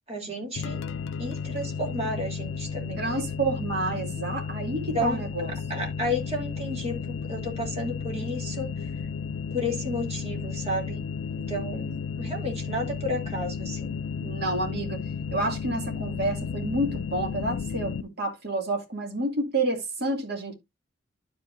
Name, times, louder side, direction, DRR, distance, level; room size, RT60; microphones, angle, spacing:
voice 1, 0.1-0.8 1.2-3.3 4.9-5.3 5.7-8.7 9.5-11.0 11.3-14.0, left 1 dB, 35° right, 2.6 m, -32 dB
sound 1, 0.6-18.0, left 6 dB, 90° left, 0.4 m, -33 dB
voice 2, 3.0-5.5 14.2-15.0 15.3-20.5, right 2 dB, 55° right, 2.1 m, -29 dB
12.0 x 5.3 x 2.5 m
head